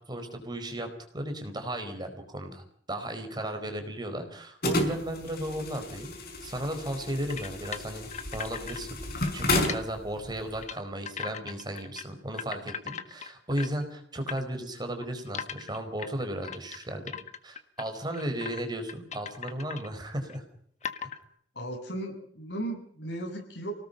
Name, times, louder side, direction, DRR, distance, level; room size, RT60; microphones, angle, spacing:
voice 1, 0.1-6.1 6.4-8.1 8.3-17.2 17.4-20.4, right 1 dB, 25° right, 6 dB, 4.5 m, -35 dB
sound 1, 4.6-10.6, left 1 dB, 60° left, 5.2 m, -32 dB
sound 2, 7.3-8.8 9.1-9.8 10.3-10.8 11.1-12.0 12.3-13.8 14.3-14.4 15.0-17.9 18.1-18.6 18.9-19.9 20.3-20.4 20.8-21.2, left 7 dB, 40° left, 1.6 m, -38 dB
voice 2, 21.5-23.7, right 1 dB, 75° left, 3 dB, 7.6 m, -36 dB
28.0 x 19.0 x 5.7 m, 0.62 s
head